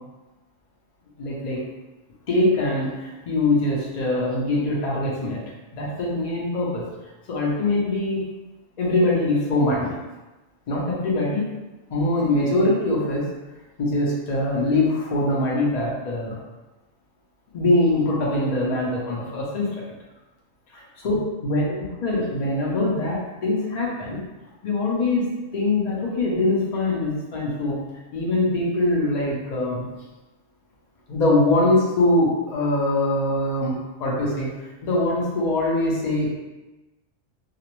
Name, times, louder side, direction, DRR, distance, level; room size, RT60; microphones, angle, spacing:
voice 1, 1.2-1.6 2.3-5.4 5.7-6.8 7.3-8.3 8.8-9.9 10.7-11.5 11.9-13.3 13.8-16.4 17.5-19.8 20.7-21.6 22.0-24.2 24.6-25.3 25.5-27.8 28.1-29.8 31.1-34.5 34.8-36.3, left 2 dB, 65° left, -4 dB, 0.4 m, -23 dB
2.4 x 2.0 x 2.9 m, 1.1 s
omnidirectional pair, 1.4 m